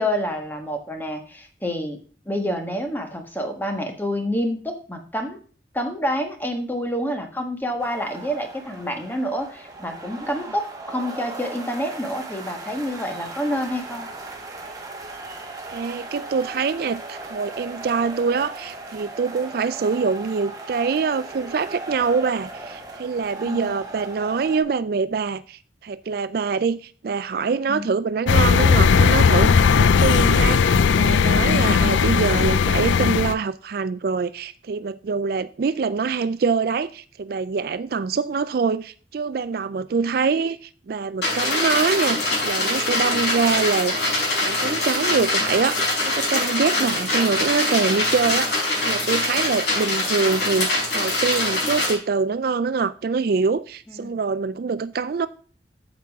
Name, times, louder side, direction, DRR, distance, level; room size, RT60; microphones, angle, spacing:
voice 1, 0.0-2.0 2.2-5.4 5.7-14.1 23.4-23.7 27.7-27.8 31.5-31.8 53.9-54.2, equal, 10° left, 1.4 m, -28 dB
sound 1, 7.8-24.6, right 2 dB, 20° right, 1.5 m, -37 dB
voice 2, 15.7-43.9 44.4-45.8 46.1-48.5 48.8-55.3, right 5 dB, 55° right, 0.4 m, -24 dB
sound 2, 28.3-33.3, left 5 dB, 90° left, 0.4 m, -17 dB
sound 3, 41.2-51.9, left 2 dB, 65° left, 5.2 m, -23 dB
8.6 x 7.4 x 3.5 m
head